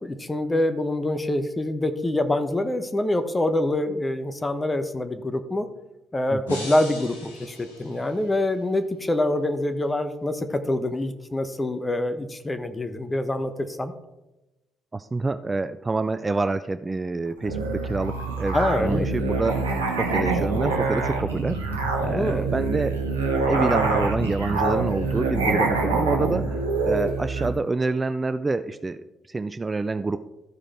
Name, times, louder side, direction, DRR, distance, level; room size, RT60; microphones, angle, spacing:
voice 1, 0.0-5.7 6.1-13.9 18.5-19.1 22.2-22.5, left 1 dB, 20° left, 9 dB, 1.1 m, -25 dB
voice 2, 6.3-6.6 14.9-23.0 23.5-30.2, right 3 dB, 25° right, 11 dB, 0.4 m, -27 dB
sound 1, 6.5-8.6, left 1 dB, 85° left, 1.4 m, -40 dB
Musical instrument, 17.4-27.6, right 3 dB, 85° right, 0.9 m, -25 dB
13.5 x 4.9 x 4.4 m, 0.98 s
figure-of-eight pair, 45°, 0 cm